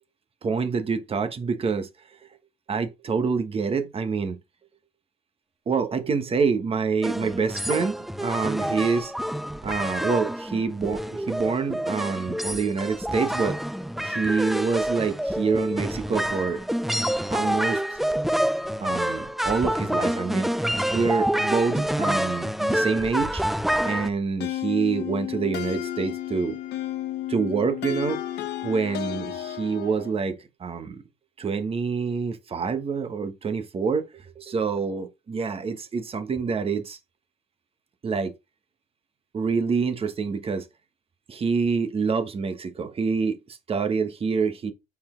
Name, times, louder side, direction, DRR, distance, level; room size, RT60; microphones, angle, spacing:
voice 1, 0.4-2.3 2.7-4.4 5.7-9.1 9.6-13.6 14.0-16.6 17.3-18.0 18.8-23.4 23.8-26.6 27.3-28.2 28.6-31.0 31.4-37.0 38.0-38.3 39.3-40.7 41.3-44.7, right 5 dB, 35° right, 1.2 m, -26 dB
sound 1, 7.0-24.1, equal, ahead, 0.4 m, -27 dB
sound 2, 24.4-30.2, left 12 dB, 80° left, 1.2 m, -32 dB
5.9 x 4.4 x 4.4 m
cardioid pair, 110°, 17 cm